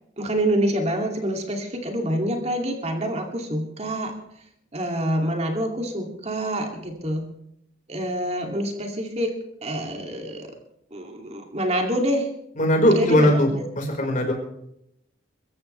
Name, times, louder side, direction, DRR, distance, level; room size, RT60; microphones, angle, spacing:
voice 1, 0.2-4.1 4.7-7.3 7.9-9.4 9.6-10.5 10.9-12.3 12.9-13.6, right 1 dB, 35° right, 2 dB, 2.6 m, -26 dB
voice 2, 12.6-13.5 13.7-14.3, equal, 40° left, 2 dB, 4.7 m, -19 dB
24.5 x 15.0 x 3.3 m, 0.77 s
head